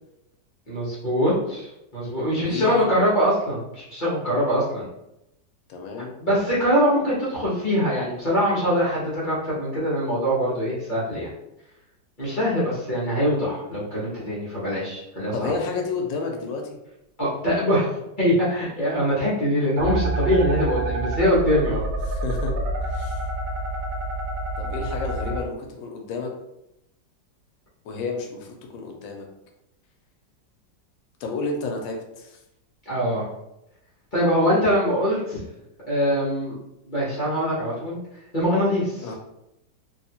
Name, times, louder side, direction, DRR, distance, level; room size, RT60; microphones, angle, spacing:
voice 1, 0.7-4.9 6.2-11.3 12.2-15.5 17.2-17.9 18.2-21.8 32.9-33.3 34.1-35.4 35.9-36.6 36.9-38.0 38.3-39.1, equal, 35° left, -8 dB, 0.9 m, -23 dB
voice 2, 2.3-2.9 5.7-6.2 15.3-16.8 22.0-22.5 22.8-23.2 24.6-26.3 27.8-29.3 31.2-32.4 39.0-39.1, left 3 dB, 90° left, 2 dB, 1.3 m, -31 dB
sound 1, 19.8-25.4, right 2 dB, 65° right, 0.8 m, -27 dB
3.2 x 2.8 x 2.8 m, 0.87 s
omnidirectional pair, 2.0 m